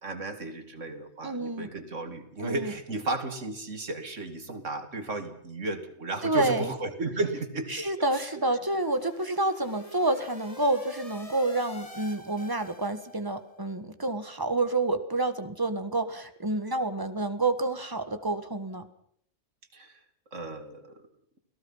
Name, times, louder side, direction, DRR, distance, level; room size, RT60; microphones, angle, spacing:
voice 1, 0.0-7.8 8.1-8.3 19.7-20.0 20.3-21.0, right 2 dB, 75° right, 8 dB, 2.8 m, -34 dB
voice 2, 1.2-1.7 2.4-2.7 6.2-6.7 7.7-18.8, right 2 dB, 15° right, 9 dB, 1.7 m, -28 dB
sound 1, 8.4-13.4, left 1 dB, 30° left, 2.7 m, -47 dB
29.0 x 18.0 x 5.7 m, 0.67 s
omnidirectional pair, 1.3 m